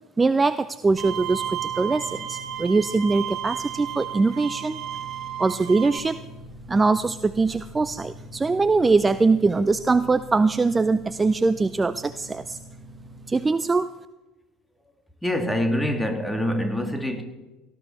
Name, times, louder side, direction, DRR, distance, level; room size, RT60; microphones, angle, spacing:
voice 1, 0.2-4.8 5.4-6.2 6.7-12.6 13.3-13.9, right 3 dB, 20° right, 0.5 m, -22 dB
sound 1, 0.9-13.5, right 1 dB, 45° left, 5.6 m, -44 dB
Bowed string instrument, 1.0-6.0, right 10 dB, 45° right, 3.1 m, -33 dB
voice 2, 15.2-17.2, equal, 5° left, 2.3 m, -25 dB
18.0 x 13.5 x 4.4 m
figure-of-eight pair, 65°, 0 cm